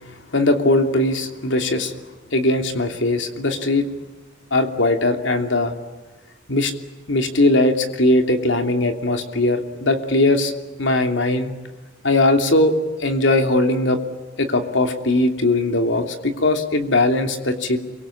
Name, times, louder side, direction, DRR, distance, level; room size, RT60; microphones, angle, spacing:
voice 1, 0.3-1.9 2.3-3.9 4.5-5.7 6.5-6.7 7.1-10.5 10.8-11.5 12.0-12.7 13.0-14.0 14.4-17.8, left 2 dB, 70° left, 6 dB, 2.9 m, -19 dB
28.5 x 24.0 x 8.6 m, 1.2 s
head